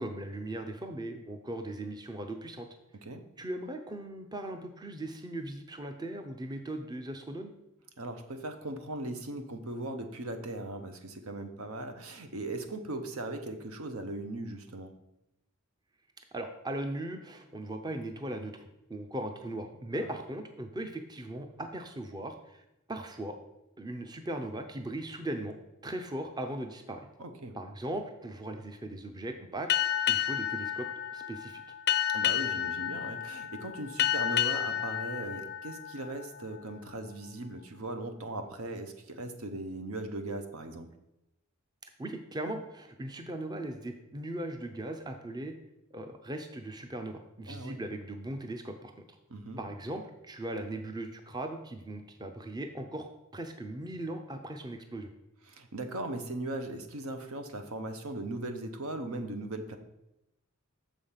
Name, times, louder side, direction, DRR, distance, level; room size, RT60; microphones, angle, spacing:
voice 1, 0.0-2.7 3.4-7.5 16.3-22.6 22.9-23.4 23.8-25.6 25.8-27.1 27.5-29.7 30.1-30.9 31.1-31.6 42.0-45.5 45.9-48.9 49.6-55.1, right 1 dB, 20° right, 6 dB, 0.5 m, -38 dB
voice 2, 8.0-14.9 19.9-20.1 27.2-27.5 32.1-40.9 47.5-47.8 49.3-49.6 55.5-59.8, right 2 dB, 75° right, 7 dB, 0.9 m, -38 dB
Boat Water vehicle, 29.7-36.8, left 10 dB, 50° left, 0.4 m, -31 dB
7.0 x 5.1 x 5.6 m, 0.88 s
head